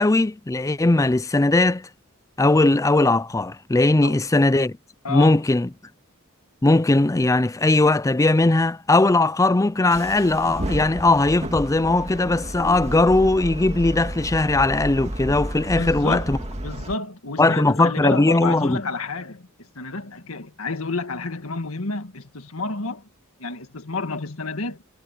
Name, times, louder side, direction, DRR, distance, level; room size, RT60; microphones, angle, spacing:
voice 1, 0.0-1.9 2.4-4.8 5.1-5.7 6.6-16.4 17.4-18.8, left 2 dB, 15° left, 0.5 m, -19 dB
voice 2, 5.0-5.4 15.8-16.3 16.6-23.1 23.4-24.8, left 3 dB, 80° left, 1.8 m, -30 dB
sound 1, 9.9-16.9, right 1 dB, 30° right, 2.1 m, -31 dB
head